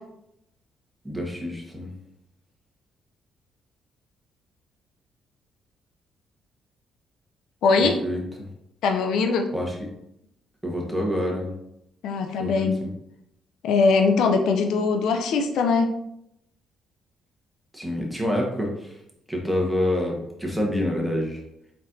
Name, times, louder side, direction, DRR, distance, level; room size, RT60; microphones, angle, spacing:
voice 1, 1.0-1.9 7.8-8.2 9.5-9.8 10.6-11.5 12.4-12.9 17.7-19.0 19.3-21.4, left 1 dB, 5° right, -1 dB, 1.2 m, -27 dB
voice 2, 7.6-8.0 8.8-9.5 12.0-12.8 13.6-15.9, left 4 dB, 80° left, 5 dB, 0.5 m, -21 dB
4.3 x 4.0 x 2.6 m, 0.80 s
cardioid pair, 90°, 0 cm